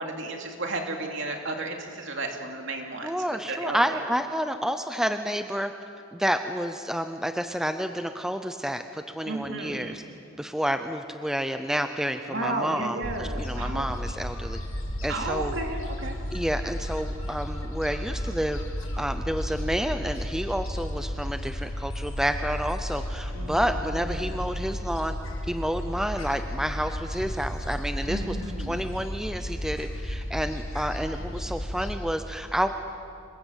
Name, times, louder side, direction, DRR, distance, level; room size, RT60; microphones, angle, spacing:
voice 1, 0.0-3.1 3.5-3.8 9.3-9.9 12.3-13.9 15.1-16.2 23.3-23.8 24.1-24.3 28.1-28.8, right 2 dB, 60° right, 2 dB, 2.9 m, -33 dB
voice 2, 3.0-5.7 6.1-10.0 10.4-14.6 15.0-15.6 16.3-18.6 19.0-25.2 25.5-28.4 28.7-32.7, equal, ahead, 7 dB, 0.6 m, -29 dB
Gull seagull, 13.0-32.0, equal, 80° left, 6.0 m, -33 dB
27.0 x 20.0 x 8.1 m, 2.5 s
head